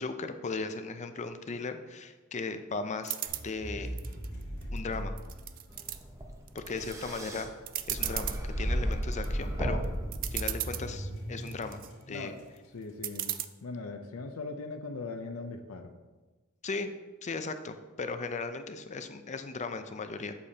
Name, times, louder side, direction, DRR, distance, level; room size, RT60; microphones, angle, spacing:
voice 1, 0.0-3.2 3.4-3.9 4.7-5.1 6.5-7.5 7.9-9.8 10.3-11.8 12.1-12.3 16.6-16.9 17.2-20.4, left 4 dB, 35° left, 8 dB, 0.5 m, -37 dB
sound 1, 3.0-3.5 4.0-4.8 5.2-6.0 6.5-6.9 7.3-7.4 7.7-8.4 8.9-9.3 9.8-9.9 10.1-10.9 11.4-11.9 13.0-13.4, right 13 dB, 40° right, 0.3 m, -35 dB
sound 2, 3.3-6.3 9.3-12.7, equal, 70° left, 2.0 m, -40 dB
sound 3, 5.8-10.9, equal, 15° right, 0.7 m, -34 dB
voice 2, 12.7-15.9, left 3 dB, 90° left, 6 dB, 0.6 m, -40 dB
8.2 x 6.7 x 2.8 m, 1.2 s
head